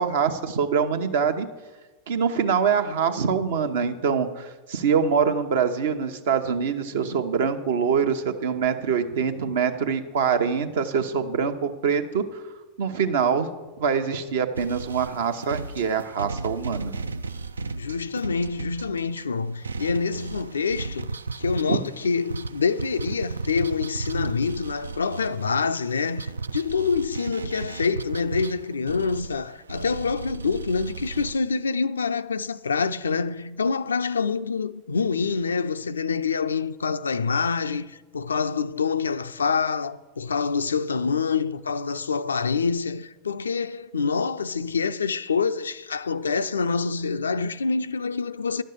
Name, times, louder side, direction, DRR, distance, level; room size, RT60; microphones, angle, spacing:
voice 1, 0.0-1.5 2.1-12.4 12.8-13.5 13.8-16.9 21.7-21.8, right 6 dB, 60° right, 0.9 m, -24 dB
sound 1, 14.5-19.2 19.6-31.4, right 4 dB, 80° right, 0.3 m, -35 dB
voice 2, 17.8-21.1 21.4-48.6, left 5 dB, 75° left, 0.4 m, -26 dB
11.5 x 6.5 x 6.6 m
figure-of-eight pair, 90°, 0 cm